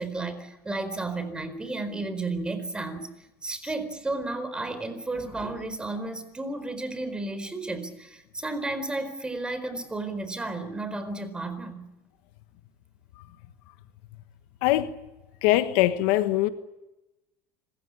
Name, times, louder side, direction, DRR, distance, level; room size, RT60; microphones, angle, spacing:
voice 1, 0.0-3.1 3.4-11.8, right 2 dB, 15° right, 4.3 m, -33 dB
voice 2, 15.4-16.5, left 15 dB, 75° left, 1.5 m, -22 dB
26.5 x 15.0 x 10.0 m
supercardioid pair, 110°, 7 cm